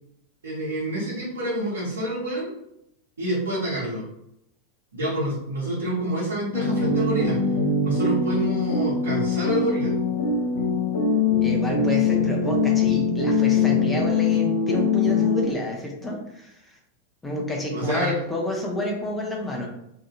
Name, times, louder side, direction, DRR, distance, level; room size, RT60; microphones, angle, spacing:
voice 1, 0.4-2.5 3.2-4.0 4.9-7.4 7.8-9.9 17.7-18.2, right 1 dB, 70° right, -10 dB, 1.1 m, -27 dB
sound 1, 6.5-15.5, left 4 dB, 60° left, 0.6 m, -22 dB
voice 2, 11.4-16.8 17.2-19.7, left 1 dB, 10° left, -2 dB, 0.7 m, -29 dB
2.7 x 2.6 x 2.4 m, 0.79 s
figure-of-eight pair, 90°, 0 cm